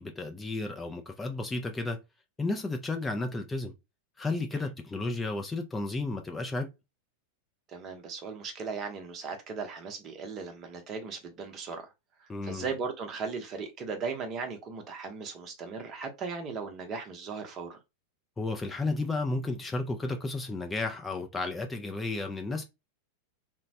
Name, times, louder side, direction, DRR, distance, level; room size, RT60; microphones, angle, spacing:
voice 1, 0.0-2.0 2.4-3.7 4.2-6.7 12.3-12.7 18.4-22.6, left 2 dB, 10° left, 0.4 m, -33 dB
voice 2, 7.7-11.9 12.2-17.8, right 5 dB, 30° right, 0.7 m, -37 dB
3.0 x 2.1 x 2.6 m
figure-of-eight pair, 90°, 0 cm